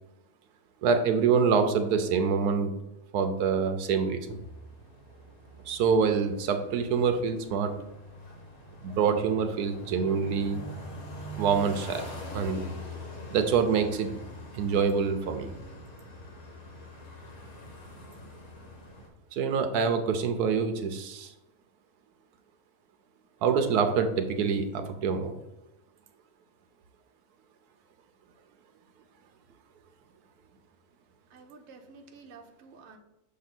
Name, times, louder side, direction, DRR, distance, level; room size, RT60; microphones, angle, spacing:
voice 1, 0.8-2.7 3.1-4.4 5.7-7.7 8.8-10.6 11.4-12.0 12.3-12.7 13.3-14.1 14.5-15.5 19.3-21.3 23.4-25.3, right 6 dB, 85° right, 7 dB, 1.2 m, -26 dB
sound 1, 4.3-19.1, left 1 dB, 70° left, 1.6 m, -44 dB
voice 2, 31.3-33.0, right 4 dB, 55° right, 3 dB, 1.0 m, -51 dB
6.6 x 3.1 x 5.9 m, 0.95 s
omnidirectional pair, 1.6 m